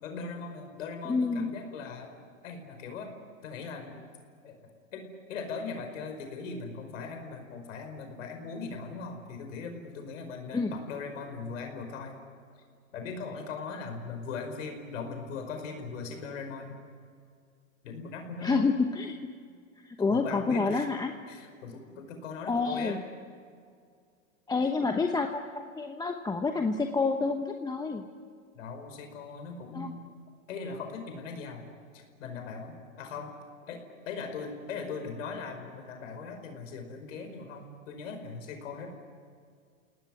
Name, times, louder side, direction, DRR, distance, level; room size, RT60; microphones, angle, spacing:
voice 1, 0.0-2.1 2.4-3.1 3.4-4.1 4.4-4.6 4.9-12.2 12.9-16.8 17.8-18.6 20.0-20.9 21.3-23.0 28.6-30.0 30.5-31.6 31.9-33.3 33.7-38.9, left 4 dB, 65° left, 5 dB, 5.2 m, -39 dB
voice 2, 1.1-1.5 10.5-10.7 18.4-19.2 20.0-21.1 22.5-23.0 24.5-28.0 29.7-29.9, left 4 dB, 10° left, 5 dB, 1.0 m, -28 dB
29.5 x 18.0 x 9.8 m, 2.2 s
hypercardioid pair, 125°, 41 cm